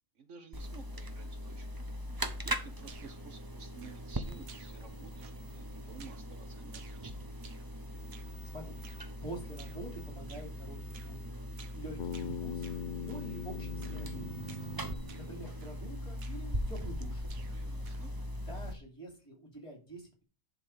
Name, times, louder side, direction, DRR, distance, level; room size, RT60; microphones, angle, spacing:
voice 1, 0.1-1.7 2.1-7.2 12.3-12.5 17.5-18.1, right 5 dB, 60° right, 8 dB, 1.3 m, -52 dB
sound 1, 0.5-18.7, equal, 20° right, 0.7 m, -40 dB
sound 2, 2.8-3.3 3.8-4.2 4.5-4.9 5.2-5.6 6.0-6.3 6.7-7.7 8.1-8.4 8.8-9.1 9.6-9.9 10.3-10.5 10.9-11.2 11.6-11.8 12.1-13.3 13.8-14.1 14.4-14.7 15.1-15.3 15.6-15.9 16.2-17.0 17.3-18.2, right 6 dB, 85° right, 1.5 m, -56 dB
voice 2, 9.2-11.5 11.8-12.5 13.0-14.7 15.1-17.3 18.5-20.2, right 1 dB, 20° left, 1 dB, 3.2 m, -46 dB
Bass guitar, 12.0-16.3, left 8 dB, 75° left, 0.4 m, -42 dB
11.0 x 3.9 x 6.3 m, 0.34 s
omnidirectional pair, 1.4 m